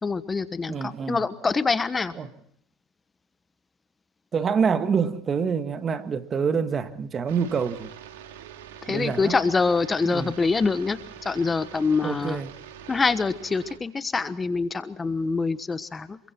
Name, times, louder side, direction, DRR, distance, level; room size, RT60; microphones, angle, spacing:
voice 1, 0.0-2.1 8.8-12.4 12.9-16.2, left 4 dB, 20° left, 1.2 m, -25 dB
voice 2, 0.7-1.2 2.2-2.3 4.3-7.9 8.9-9.3 10.0-10.3 12.0-12.5, right 6 dB, 30° right, 1.7 m, -26 dB
sound 1, 7.3-13.8, right 9 dB, 90° right, 2.3 m, -44 dB
27.5 x 22.5 x 4.5 m
supercardioid pair, 100°, 0 cm